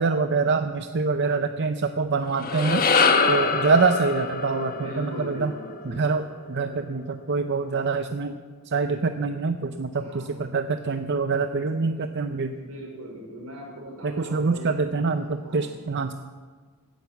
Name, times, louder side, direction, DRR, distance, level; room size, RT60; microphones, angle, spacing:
voice 1, 0.0-2.9 3.3-5.5 5.8-8.3 8.7-12.5 14.0-16.1, right 4 dB, 50° right, 8 dB, 0.6 m, -25 dB
sound 1, 2.2-6.7, left 4 dB, 40° left, 1.2 m, -25 dB
voice 2, 3.0-3.7 4.7-5.8 10.0-10.3 12.5-14.7 15.4-15.7, equal, 80° right, -1 dB, 5.3 m, -39 dB
17.0 x 10.5 x 7.1 m, 1.5 s
head